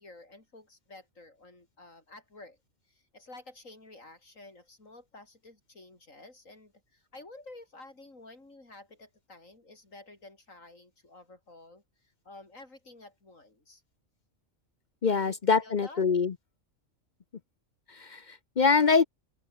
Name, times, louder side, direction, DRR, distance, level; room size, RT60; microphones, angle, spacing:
voice 1, 0.0-2.6 2.9-13.8 15.1-16.1, left 2 dB, 75° left, 5.9 m, -51 dB
voice 2, 15.0-16.3 18.0-19.0, left 5 dB, 45° left, 0.7 m, -24 dB
open air
omnidirectional pair, 1.4 m